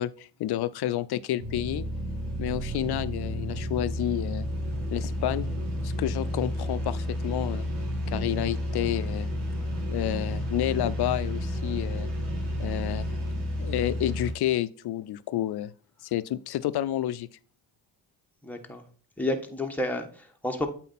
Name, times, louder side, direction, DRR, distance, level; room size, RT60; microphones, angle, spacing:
voice 1, 0.0-1.9 2.4-4.5 4.9-5.5 5.8-7.7 8.1-9.3 9.9-12.1 12.6-13.1 13.6-15.7 16.0-17.3, left 13 dB, 65° left, 0.5 m, -30 dB
sound 1, 1.4-14.3, equal, 70° right, 2.0 m, -31 dB
voice 2, 18.4-18.8 19.2-20.7, left 1 dB, 5° left, 1.3 m, -30 dB
8.3 x 4.0 x 4.2 m
cardioid pair, 75°, 43 cm